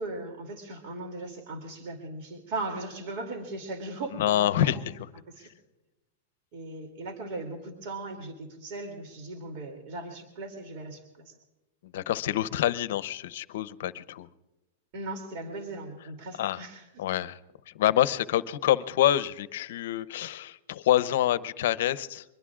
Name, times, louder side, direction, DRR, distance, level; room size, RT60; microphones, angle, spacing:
voice 1, 0.0-4.9 5.3-5.5 6.5-11.3 14.9-17.0, right 2 dB, 50° right, 5 dB, 2.8 m, -38 dB
voice 2, 4.1-5.1 11.8-14.3 16.4-16.6 17.0-17.4 17.7-22.2, left 12 dB, 65° left, 15 dB, 0.7 m, -27 dB
24.0 x 21.5 x 2.4 m, 1.0 s
supercardioid pair, 150°, 0 cm